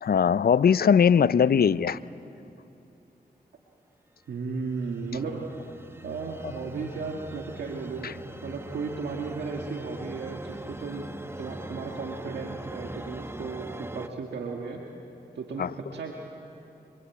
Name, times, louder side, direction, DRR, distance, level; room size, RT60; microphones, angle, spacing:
voice 1, 0.0-2.0 8.0-8.1 15.6-15.7, left 7 dB, 65° left, 17 dB, 0.6 m, -20 dB
voice 2, 1.2-1.5 4.3-5.5 6.0-8.2 8.4-11.1 11.4-14.8 15.3-16.1, right 4 dB, 85° right, 0 dB, 1.8 m, -35 dB
sound 1, 4.4-14.1, right 1 dB, 15° right, 1.3 m, -42 dB
25.5 x 25.5 x 8.4 m, 2.9 s
cardioid pair, 45°, 17 cm